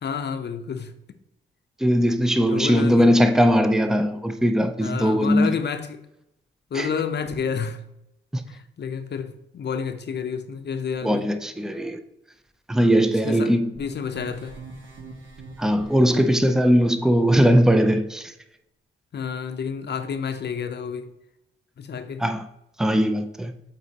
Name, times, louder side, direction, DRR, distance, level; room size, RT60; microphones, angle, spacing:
voice 1, 0.0-0.9 2.4-3.1 4.8-6.0 6.7-7.8 8.5-11.3 13.2-14.6 19.1-21.1 21.8-22.2, left 6 dB, 55° left, 0.6 m, -30 dB
voice 2, 1.8-5.5 6.7-6.9 8.3-8.4 11.0-12.0 12.7-13.7 15.6-18.3 22.2-22.4 22.8-23.5, equal, ahead, 0.5 m, -19 dB
sound 1, 13.7-16.5, right 3 dB, 70° right, 1.4 m, -42 dB
8.1 x 4.1 x 2.9 m
cardioid pair, 80°, 21 cm